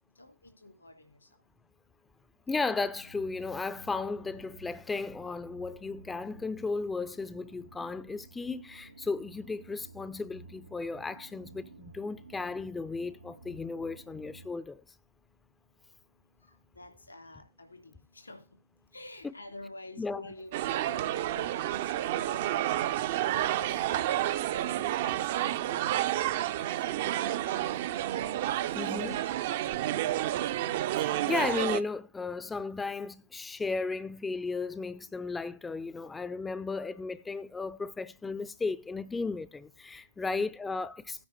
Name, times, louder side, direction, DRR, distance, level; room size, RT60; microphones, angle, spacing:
voice 1, 0.2-1.2 16.7-18.4 18.9-21.8 22.0-22.6 23.2-24.2 24.5-26.0 26.5-27.9 28.7-29.7 30.0-30.2 40.2-40.4, left 2 dB, 80° left, 3.0 m, -49 dB
voice 2, 2.5-14.8 19.2-19.3 20.0-20.2 28.7-29.2 31.0-41.3, left 4 dB, 15° left, 0.5 m, -35 dB
sound 1, 2.9-14.5, right 3 dB, 80° right, 1.0 m, -53 dB
sound 2, 20.5-31.8, right 13 dB, 55° right, 0.7 m, -30 dB
9.5 x 4.9 x 7.7 m
figure-of-eight pair, 90°, 0 cm